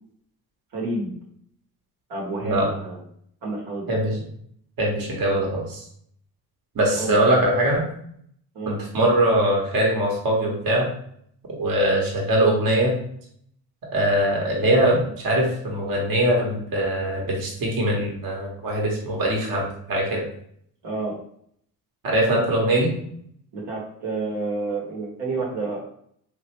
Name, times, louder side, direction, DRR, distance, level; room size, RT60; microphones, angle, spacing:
voice 1, 0.7-1.1 2.1-3.0 3.4-3.9 7.0-7.2 8.5-8.8 20.8-21.1 23.5-25.8, right 3 dB, 75° right, -3 dB, 1.1 m, -29 dB
voice 2, 4.8-5.8 6.7-7.8 8.7-10.9 11.5-12.9 13.9-20.2 22.0-22.9, right 1 dB, 55° right, -1 dB, 1.1 m, -22 dB
3.1 x 2.5 x 2.9 m, 0.66 s
supercardioid pair, 70°, 41 cm